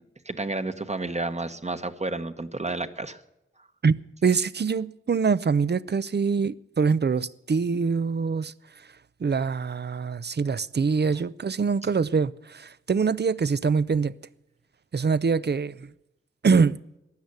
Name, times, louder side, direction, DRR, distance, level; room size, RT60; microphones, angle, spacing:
voice 1, 0.2-3.2, right 2 dB, 35° right, 1.1 m, -31 dB
voice 2, 4.2-8.5 9.2-14.1 14.9-15.9 16.4-16.8, right 5 dB, 55° right, 0.6 m, -24 dB
15.5 x 10.5 x 8.1 m
wide cardioid pair, 55°, 21 cm